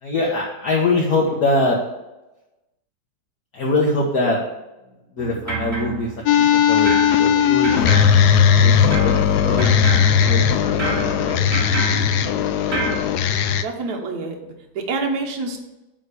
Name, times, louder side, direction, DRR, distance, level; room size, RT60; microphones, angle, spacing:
voice 1, 0.0-1.8 3.5-4.4 5.1-6.1 6.7-8.0 8.3-11.8, left 2 dB, 55° left, -3 dB, 1.7 m, -23 dB
sound 1, 5.2-6.5 6.9-13.0, right 3 dB, 15° right, 2.8 m, -29 dB
sound 2, 6.3-13.6, left 8 dB, 70° left, 0.9 m, -17 dB
voice 2, 13.6-15.6, right 3 dB, 55° right, 1 dB, 1.6 m, -27 dB
9.1 x 3.7 x 6.7 m, 1.0 s
omnidirectional pair, 2.2 m